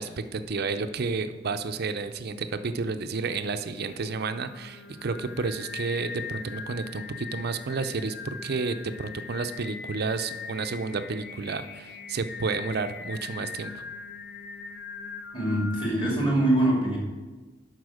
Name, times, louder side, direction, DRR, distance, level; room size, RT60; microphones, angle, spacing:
voice 1, 0.0-13.8, right 4 dB, 55° right, 9 dB, 0.5 m, -31 dB
Singing, 3.3-15.9, left 5 dB, 60° left, 0.6 m, -41 dB
voice 2, 15.3-17.0, right 1 dB, 25° left, -3 dB, 2.5 m, -23 dB
11.0 x 4.3 x 6.3 m, 1.3 s
head